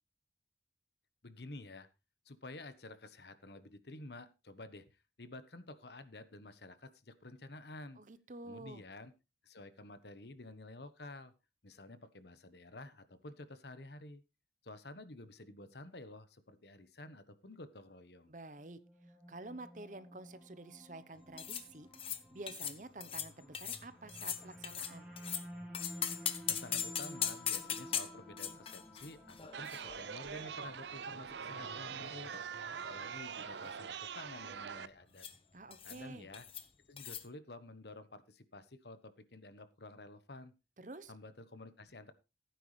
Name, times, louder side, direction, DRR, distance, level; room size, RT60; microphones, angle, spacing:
voice 1, 1.2-1.9 2.2-8.0 8.4-9.1 9.4-11.3 11.6-14.2 14.6-18.3 26.5-32.3 32.8-35.3 35.8-36.5 36.9-40.5 41.1-42.1, left 2 dB, 75° left, 12 dB, 1.2 m, -51 dB
voice 2, 8.0-8.8 18.3-18.8 19.3-25.1 35.5-36.3 40.8-41.1, right 2 dB, 45° right, 13 dB, 0.9 m, -49 dB
sound 1, 18.6-33.9, equal, ahead, 4.2 m, -53 dB
sound 2, 21.4-21.6 21.9-22.2 22.5-22.8 23.0-23.3 23.5-23.8 24.1-25.4 25.7-30.4 30.7-30.8 31.6-32.4 32.7-33.0 33.3-33.7 35.2-35.4 35.7-36.0 36.3-36.6 37.0-37.2, left 9 dB, 30° left, 1.0 m, -40 dB
Chatter, 29.5-34.9, right 7 dB, 85° right, 0.6 m, -43 dB
15.5 x 9.3 x 3.3 m, 0.27 s
head